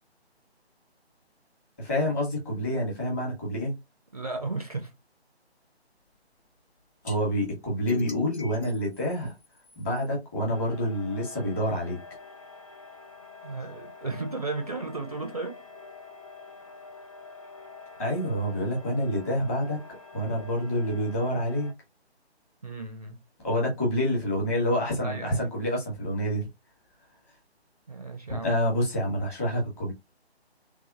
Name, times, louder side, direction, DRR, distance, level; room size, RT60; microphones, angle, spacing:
voice 1, 1.8-3.7 7.0-9.3 9.8-12.0 18.0-19.8 20.1-21.7 23.4-26.5 28.4-29.9, equal, 15° left, 1.4 m, -27 dB
voice 2, 4.1-4.9 13.4-15.6 16.6-16.7 22.6-23.2 25.0-25.5 27.9-28.5, right 3 dB, 35° right, 0.5 m, -34 dB
sound 1, 7.0-7.2 7.9-10.1, left 1 dB, 75° left, 1.5 m, -43 dB
sound 2, 10.5-21.7, left 4 dB, 30° left, 0.7 m, -47 dB
3.4 x 3.3 x 2.4 m
figure-of-eight pair, 150°, 33 cm